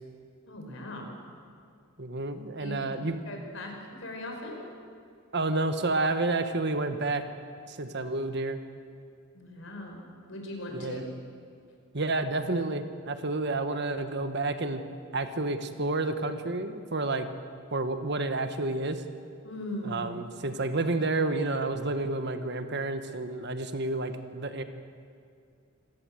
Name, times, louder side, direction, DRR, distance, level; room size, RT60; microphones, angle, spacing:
voice 1, 0.5-1.1 2.6-4.7 9.3-10.0 10.3-11.0 19.4-20.1, left 1 dB, 65° left, 2 dB, 5.1 m, -39 dB
voice 2, 2.0-3.2 5.3-7.2 7.7-8.6 10.7-11.0 11.9-14.8 15.1-17.3 17.7-19.0 19.8-24.6, right 2 dB, 55° right, 9 dB, 1.4 m, -30 dB
27.0 x 17.0 x 7.8 m, 2.3 s
head